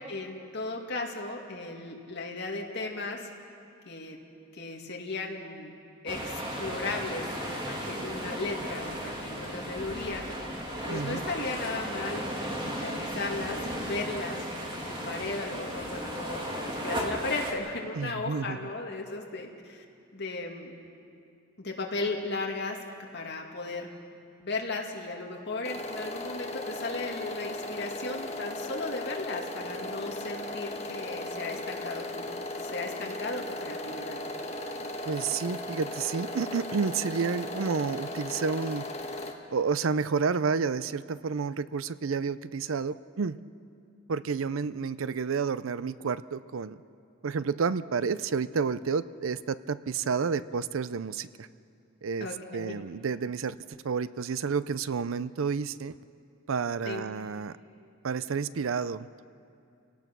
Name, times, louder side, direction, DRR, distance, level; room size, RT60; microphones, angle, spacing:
voice 1, 0.1-3.3 3.9-4.2 4.5-5.7 6.0-10.2 10.8-12.2 12.6-14.4 14.7-19.8 20.1-20.7 21.6-22.8 23.1-23.9 24.4-34.2 52.2-52.7 56.8-57.0, left 3 dB, 55° left, 0 dB, 2.4 m, -36 dB
sound 1, 6.1-17.5, equal, 25° right, 2.7 m, -35 dB
voice 2, 10.9-11.2 17.9-18.7 35.1-38.8 39.5-43.4 44.1-46.8 47.2-51.5 52.0-52.3 52.5-56.0 56.5-57.6 58.0-59.3, right 5 dB, 75° right, 15 dB, 0.5 m, -30 dB
sound 2, 25.6-39.3, left 1 dB, 30° left, 1.6 m, -37 dB
29.5 x 17.5 x 6.1 m, 2.5 s
head